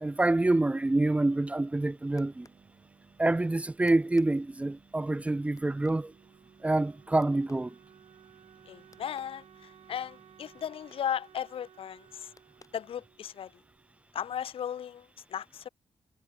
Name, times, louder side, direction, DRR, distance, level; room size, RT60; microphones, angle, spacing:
voice 1, 0.0-2.5 3.2-6.1 6.6-7.7, right 2 dB, 15° right, 0.5 m, -27 dB
sound 1, 0.8-12.3, right 5 dB, 50° right, 5.5 m, -63 dB
sound 2, 1.5-13.4, left 4 dB, 35° left, 6.0 m, -65 dB
Wind instrument woodwind instrument, 5.5-14.2, right 9 dB, 80° right, 2.0 m, -58 dB
voice 2, 8.7-12.3 12.7-13.5 14.1-15.7, left 9 dB, 75° left, 1.1 m, -36 dB
cardioid pair, 90°, 9 cm